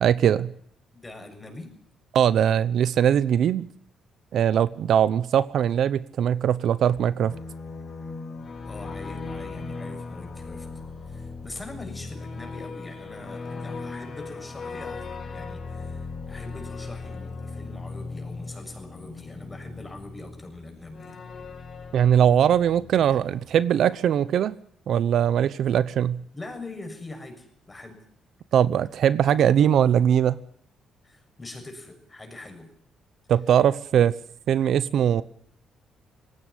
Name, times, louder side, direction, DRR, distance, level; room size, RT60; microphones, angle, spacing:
voice 1, 0.0-0.5 2.1-3.7 4.3-7.3 21.9-24.5 24.9-26.2 28.5-30.4 33.3-34.1 34.5-35.2, right 9 dB, 70° right, 17 dB, 0.8 m, -21 dB
voice 2, 0.9-1.7 8.6-10.7 11.0-21.2 26.3-28.1 31.0-32.7 33.9-34.0, left 2 dB, 15° left, 5 dB, 6.9 m, -43 dB
sound 1, 6.9-23.6, left 3 dB, 50° left, 6.5 m, -38 dB
19.0 x 16.5 x 10.0 m, 0.64 s
cardioid pair, 90°, 0 cm